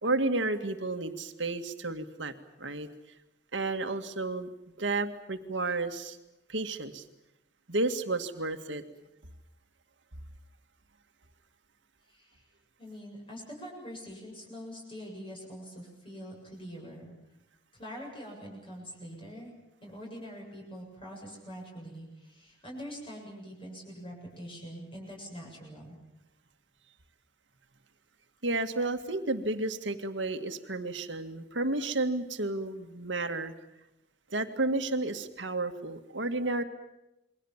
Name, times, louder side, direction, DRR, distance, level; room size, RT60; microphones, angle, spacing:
voice 1, 0.0-2.3 2.6-2.9 3.5-4.5 4.8-6.2 6.5-7.0 7.7-8.8 28.4-33.5 34.3-36.6, right 2 dB, 90° right, 7 dB, 2.0 m, -31 dB
voice 2, 12.1-12.5 12.8-17.2 17.8-19.5 19.8-26.0, equal, 30° left, -1 dB, 7.7 m, -44 dB
28.5 x 22.5 x 7.4 m, 0.91 s
head